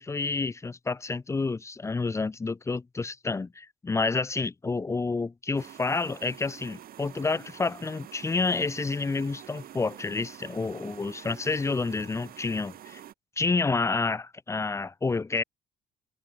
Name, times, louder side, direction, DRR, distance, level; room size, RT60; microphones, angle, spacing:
voice 1, 0.0-13.0 13.4-15.4, left 4 dB, 15° left, 0.7 m, -29 dB
sound 1, 5.6-13.1, right 11 dB, 60° right, 5.6 m, -47 dB
cardioid pair, 110°, 17 cm